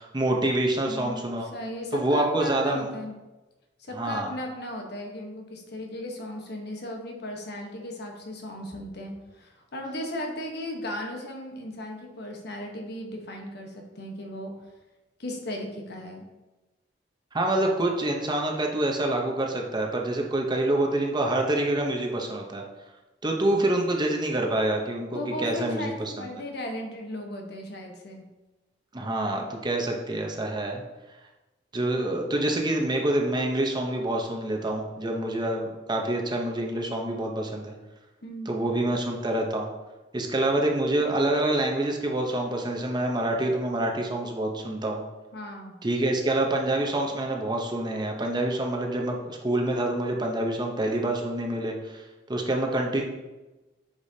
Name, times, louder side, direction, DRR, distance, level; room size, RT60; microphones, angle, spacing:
voice 1, 0.0-1.5 1.9-2.9 3.9-4.3 17.3-22.6 23.2-26.3 28.9-30.8 31.7-37.7 38.5-39.7 40.1-45.0 45.8-53.0, right 1 dB, 25° right, 1 dB, 0.8 m, -26 dB
voice 2, 0.7-3.1 3.8-14.5 15.2-16.2 25.1-28.3 38.2-38.6 45.3-45.8, left 1 dB, 65° left, 2 dB, 1.2 m, -36 dB
8.3 x 5.0 x 2.8 m, 1.1 s
head